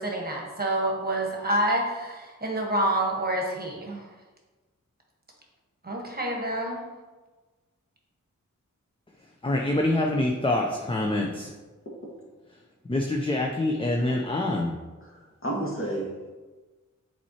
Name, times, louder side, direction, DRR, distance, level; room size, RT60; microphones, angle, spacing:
voice 1, 0.0-4.1 5.8-6.8, right 1 dB, 30° right, -1 dB, 1.2 m, -27 dB
voice 2, 9.4-11.5 12.9-14.7, left 1 dB, 15° left, 0 dB, 0.6 m, -25 dB
voice 3, 15.0-16.3, right 1 dB, 45° left, -3 dB, 1.7 m, -32 dB
7.5 x 4.3 x 2.9 m, 1.3 s
wide cardioid pair, 75°, 31 cm